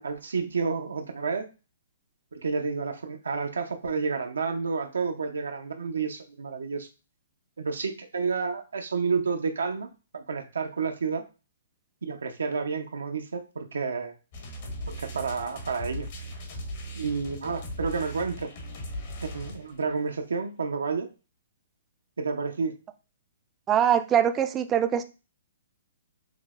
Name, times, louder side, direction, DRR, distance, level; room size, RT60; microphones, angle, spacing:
voice 1, 0.0-1.5 2.3-6.9 7.6-9.9 10.1-11.2 12.0-14.1 14.9-16.1 17.0-18.5 19.2-21.1 22.2-22.7, right 5 dB, 85° right, 4 dB, 0.5 m, -30 dB
sound 1, 14.3-19.9, equal, 50° left, 1.0 m, -38 dB
voice 2, 23.7-25.0, right 9 dB, 20° right, 9 dB, 0.3 m, -23 dB
5.9 x 2.1 x 2.4 m, 0.31 s
hypercardioid pair, 140°, 0 cm